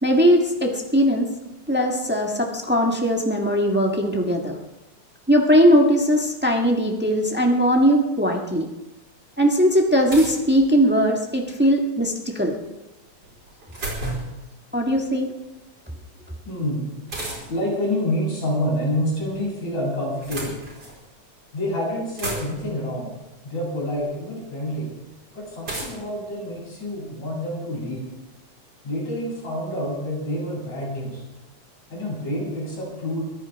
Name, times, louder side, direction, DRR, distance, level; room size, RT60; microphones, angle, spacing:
voice 1, 0.0-1.3 1.7-4.6 5.3-8.7 9.4-12.6 14.7-15.3, equal, 15° right, 1 dB, 0.3 m, -19 dB
sound 1, 9.1-9.2 10.1-11.2 13.2-14.4 17.1-17.7 18.8-19.4 20.0-21.0 21.6-21.7 21.9-22.8 23.9-24.0 25.6-27.2, right 2 dB, 35° right, 4.9 m, -34 dB
voice 2, 16.5-16.9 17.5-20.6 21.5-23.1 23.4-24.9 25.3-28.0 28.8-31.2 31.9-33.2, left 1 dB, 70° left, -4 dB, 9.1 m, -27 dB
23.5 x 14.5 x 3.6 m, 1.0 s
omnidirectional pair, 3.4 m